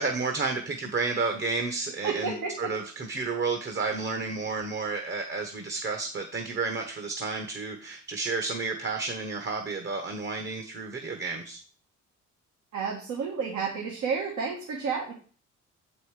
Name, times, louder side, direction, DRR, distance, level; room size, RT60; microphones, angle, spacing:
voice 1, 0.0-11.6, right 4 dB, 35° right, 4 dB, 1.2 m, -31 dB
voice 2, 2.0-2.7 12.7-15.1, right 5 dB, 75° right, -1 dB, 1.8 m, -31 dB
7.1 x 5.3 x 4.8 m, 0.41 s
cardioid pair, 90°, 30 cm